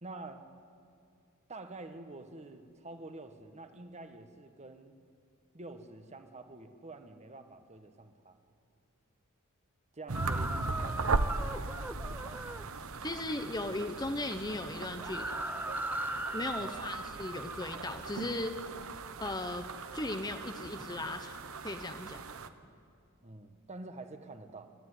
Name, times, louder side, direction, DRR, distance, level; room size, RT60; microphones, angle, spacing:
voice 1, 0.0-0.5 1.5-5.0 5.5-8.4 9.9-11.7 12.0-12.4 16.6-16.9 23.2-24.7, right 2 dB, 30° right, 7 dB, 1.4 m, -48 dB
sound 1, 10.1-12.7 15.0-17.9, right 1 dB, 10° right, 0.7 m, -39 dB
sound 2, 10.1-22.5, right 3 dB, 70° right, 1.0 m, -38 dB
voice 2, 13.0-15.4 16.3-18.6 19.2-19.7 19.9-21.4 21.6-22.2, left 2 dB, 20° left, 7 dB, 1.0 m, -37 dB
29.5 x 13.5 x 9.9 m, 2.4 s
head